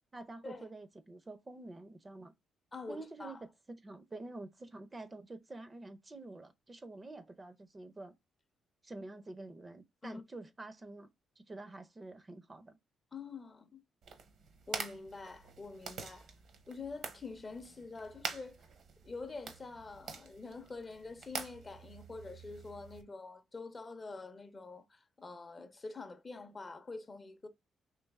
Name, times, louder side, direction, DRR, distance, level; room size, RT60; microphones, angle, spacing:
voice 1, 0.1-2.3 2.9-3.4 3.7-8.1 8.8-11.1 11.4-12.8, right 2 dB, 25° right, 0.5 m, -48 dB
voice 2, 2.7-3.4 10.0-10.2 13.1-13.8 14.7-16.3 16.7-18.6 19.0-27.5, left 3 dB, 30° left, 0.5 m, -46 dB
sound 1, 14.0-23.0, right 5 dB, 65° right, 0.8 m, -46 dB
3.1 x 2.9 x 3.4 m
cardioid pair, 90°, 0 cm